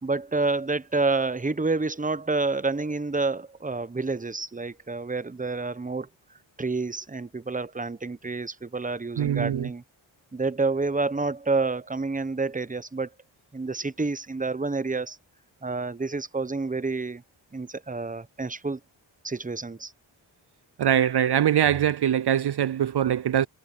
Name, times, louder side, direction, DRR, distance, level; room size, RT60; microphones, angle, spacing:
voice 1, 0.0-6.1 6.6-9.8 10.3-13.1 13.5-15.2 15.6-17.2 17.5-18.8 19.2-19.9, right 3 dB, 15° right, 0.9 m, -28 dB
voice 2, 9.2-9.7 20.8-23.5, right 10 dB, 55° right, 0.6 m, -23 dB
cardioid pair, 50°, 48 cm